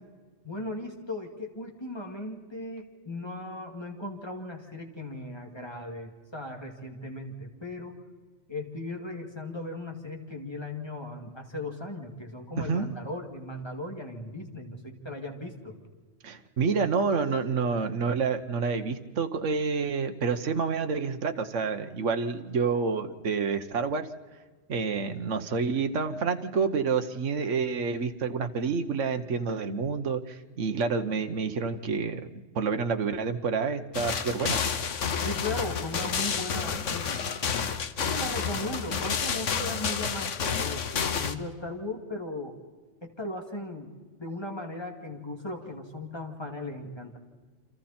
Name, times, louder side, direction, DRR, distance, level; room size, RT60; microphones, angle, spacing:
voice 1, 0.4-8.0 8.5-15.7 35.2-37.2 38.1-42.5 43.0-43.9 44.2-47.2, left 2 dB, 20° left, 2 dB, 2.7 m, -37 dB
voice 2, 12.6-12.9 16.2-24.1 24.7-34.6, right 5 dB, 75° right, 7 dB, 1.5 m, -28 dB
sound 1, 33.9-41.3, left 6 dB, 80° left, 1.4 m, -30 dB
29.0 x 26.5 x 4.4 m, 1.4 s
omnidirectional pair, 1.3 m